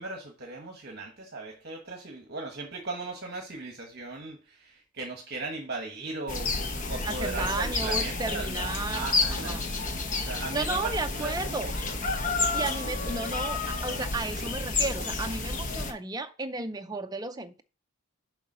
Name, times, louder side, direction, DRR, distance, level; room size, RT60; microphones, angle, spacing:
voice 1, 0.0-9.6 10.1-12.0, right 3 dB, 45° right, 1.2 m, -38 dB
sound 1, 6.3-15.9, left 3 dB, 35° left, 0.9 m, -30 dB
voice 2, 7.0-9.7 10.2-11.7 12.5-17.6, right 3 dB, 15° right, 0.5 m, -34 dB
7.1 x 4.7 x 5.4 m
head